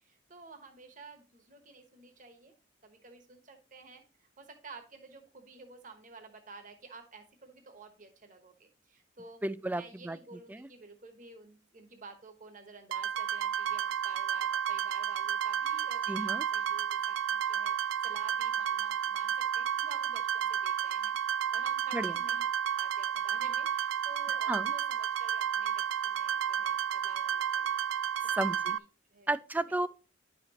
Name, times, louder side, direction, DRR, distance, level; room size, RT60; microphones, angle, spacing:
voice 1, 0.0-2.5 2.8-22.4 22.8-27.8 28.7-28.8 29.1-29.3, right 3 dB, 45° right, 1.1 m, -52 dB
voice 2, 9.4-10.2 10.5-10.7 16.1-16.4 21.9-22.1 24.5-24.7 28.3-28.8 29.3-29.9, right 1 dB, 10° right, 0.3 m, -33 dB
sound 1, 12.9-28.8, right 9 dB, 85° right, 0.3 m, -32 dB
9.9 x 5.8 x 2.9 m
head